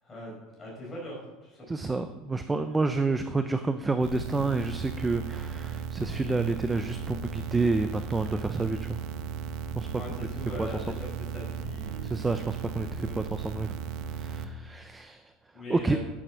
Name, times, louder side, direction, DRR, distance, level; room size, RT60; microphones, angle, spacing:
voice 1, 0.0-0.3 0.6-1.9 10.0-12.2 12.9-13.2 15.5-16.0, left 1 dB, 10° left, -4 dB, 5.1 m, -41 dB
voice 2, 1.7-9.0 9.8-10.0 10.6-10.7 12.0-13.7 14.1-15.3 15.7-16.0, right 3 dB, 10° right, 9 dB, 0.4 m, -29 dB
sound 1, 4.0-14.4, right 7 dB, 45° right, 0.8 m, -36 dB
10.5 x 9.8 x 6.2 m, 1.1 s
cardioid pair, 180°, 0 cm